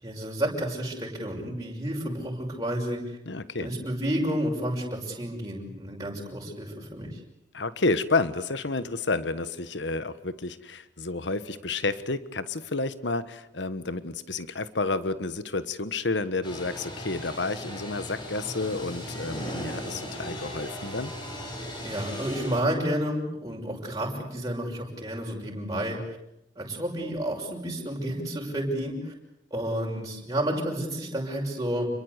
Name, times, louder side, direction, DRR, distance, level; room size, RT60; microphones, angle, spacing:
voice 1, 0.0-3.2 3.6-7.2 21.8-26.0 26.6-29.1 29.5-31.9, right 1 dB, 20° right, -2 dB, 6.1 m, -30 dB
voice 2, 3.3-3.7 7.5-21.1, left 3 dB, 75° left, 13 dB, 1.4 m, -30 dB
sound 1, 16.4-22.6, equal, 25° left, 6.4 m, -37 dB
29.0 x 22.5 x 8.2 m, 0.83 s
head